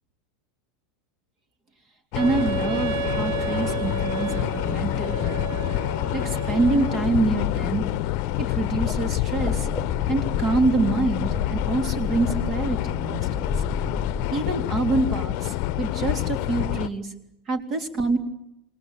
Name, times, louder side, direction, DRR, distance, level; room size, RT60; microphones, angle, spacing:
sound 1, 2.1-16.9, left 15 dB, 50° left, 1.0 m, -27 dB
voice 1, 2.1-5.4 6.1-7.8 8.4-9.7 10.1-13.5 14.3-17.1 17.5-18.2, right 3 dB, 35° right, 7 dB, 3.7 m, -26 dB
Wind instrument woodwind instrument, 2.2-7.2, right 9 dB, 65° right, 1.2 m, -32 dB
sound 2, 8.7-14.3, left 3 dB, ahead, 1.7 m, -33 dB
28.0 x 20.5 x 8.7 m, 0.86 s
figure-of-eight pair, 85°, 0 cm